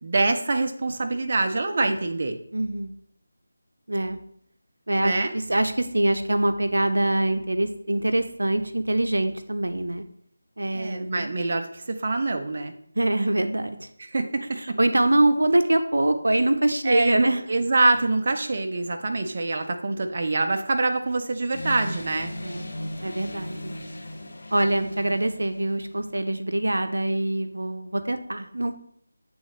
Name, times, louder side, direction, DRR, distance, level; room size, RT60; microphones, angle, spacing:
voice 1, 0.0-2.4 5.0-5.3 10.7-12.7 14.1-14.8 16.8-22.3, right 3 dB, 40° right, 5 dB, 0.6 m, -25 dB
voice 2, 2.5-3.0 3.9-4.2 4.9-10.0 10.6-11.3 13.0-13.9 14.6-17.4 22.4-22.7 23.0-23.8 24.5-28.8, right 1 dB, 85° right, 8 dB, 0.6 m, -24 dB
sound 1, 21.5-25.9, left 1 dB, 55° left, 1.2 m, -37 dB
8.1 x 3.8 x 3.2 m, 0.67 s
figure-of-eight pair, 170°, 0 cm